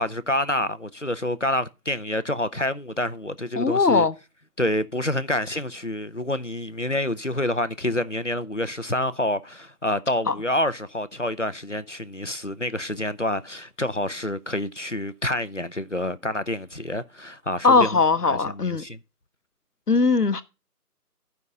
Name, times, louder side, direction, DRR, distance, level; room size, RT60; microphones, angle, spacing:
voice 1, 0.0-4.1 4.6-19.0, left 1 dB, 50° left, 0.6 m, -28 dB
voice 2, 3.6-4.1 10.3-10.4 17.6-18.8 19.9-20.4, left 4 dB, 75° left, 0.9 m, -19 dB
12.0 x 5.5 x 4.9 m
figure-of-eight pair, 180°, 48 cm